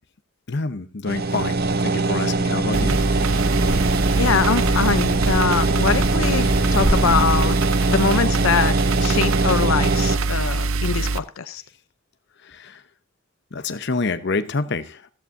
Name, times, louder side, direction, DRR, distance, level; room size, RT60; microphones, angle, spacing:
voice 1, 0.5-1.6 1.8-3.0 12.4-12.8 13.5-15.1, left 3 dB, 55° left, 11 dB, 0.8 m, -27 dB
sound 1, 1.0-10.2, right 3 dB, 50° right, 0.7 m, -22 dB
Wind, 2.5-7.6, equal, 25° right, 1.9 m, -27 dB
sound 2, 2.7-11.2, right 3 dB, 85° right, 0.7 m, -24 dB
voice 2, 4.2-7.6 7.9-8.7 9.0-11.6, left 5 dB, 85° left, 12 dB, 0.6 m, -23 dB
14.5 x 14.0 x 2.6 m, 0.30 s
head